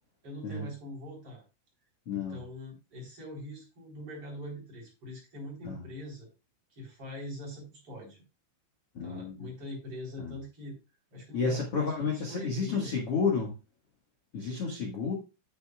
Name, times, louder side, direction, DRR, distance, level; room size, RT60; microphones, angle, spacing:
voice 1, 0.2-1.4 2.1-6.3 6.7-8.2 9.0-10.8 11.1-12.9, left 1 dB, 30° right, -1 dB, 4.3 m, -43 dB
voice 2, 2.0-2.4 5.6-5.8 8.9-9.3 10.2-10.3 11.3-13.5 14.3-15.1, left 5 dB, 75° left, -1 dB, 1.3 m, -31 dB
9.6 x 9.3 x 2.4 m, 0.27 s
omnidirectional pair, 5.6 m